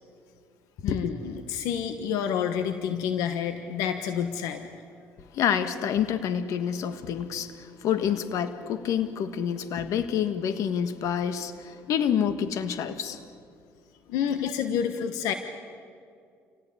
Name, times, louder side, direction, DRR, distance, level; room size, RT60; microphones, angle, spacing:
voice 1, 0.8-4.7 14.1-15.3, left 8 dB, 85° left, 8 dB, 1.3 m, -29 dB
voice 2, 5.3-13.2 14.4-14.5, left 8 dB, 70° left, 10 dB, 1.6 m, -28 dB
28.0 x 18.0 x 8.7 m, 2.3 s
cardioid pair, 95°, 6 cm